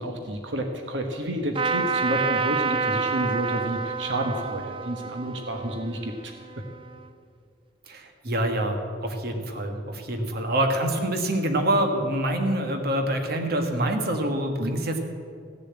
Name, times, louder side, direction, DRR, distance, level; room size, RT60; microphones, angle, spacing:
voice 1, 0.0-6.3 14.6-14.8, equal, 75° right, 4 dB, 1.2 m, -30 dB
Trumpet, 1.6-7.1, right 5 dB, 30° right, 0.5 m, -29 dB
voice 2, 7.9-15.0, right 1 dB, 55° right, 4 dB, 1.4 m, -26 dB
15.5 x 6.9 x 8.7 m, 2.2 s
head